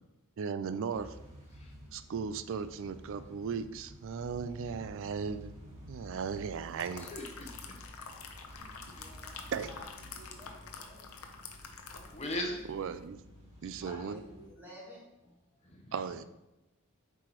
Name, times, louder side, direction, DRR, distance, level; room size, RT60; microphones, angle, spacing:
voice 1, 0.4-1.2 1.9-5.6 5.9-7.1 9.5-9.7 12.7-13.2 13.6-14.2 15.9-16.2, right 6 dB, 60° right, 13 dB, 0.3 m, -37 dB
sound 1, 0.9-14.5, equal, 30° right, 1.7 m, -52 dB
sound 2, 6.4-12.5 12.8-13.0, left 5 dB, 70° left, 0.7 m, -47 dB
voice 2, 7.0-7.8 8.5-8.6 8.9-9.1 12.1-12.6 15.7-15.9, left 1 dB, 30° left, 0 dB, 0.9 m, -39 dB
voice 3, 8.9-9.8 10.1-11.1 13.8-15.4, left 1 dB, 10° right, -5 dB, 1.5 m, -52 dB
7.6 x 4.8 x 3.0 m, 0.97 s
head